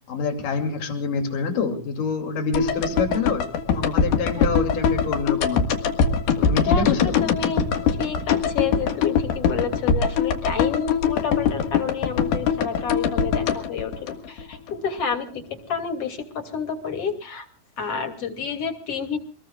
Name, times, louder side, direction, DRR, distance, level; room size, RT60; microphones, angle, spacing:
voice 1, 0.1-3.4 3.7-5.7 6.4-7.3, left 4 dB, 70° left, 5 dB, 4.3 m, -26 dB
sound 1, 2.5-14.7 15.0-15.1, left 6 dB, 90° left, 3.5 m, -23 dB
voice 2, 6.7-7.7 8.0-17.5 17.8-19.2, left 6 dB, 45° left, 5 dB, 3.4 m, -29 dB
26.5 x 21.0 x 2.4 m, 0.38 s
omnidirectional pair, 4.0 m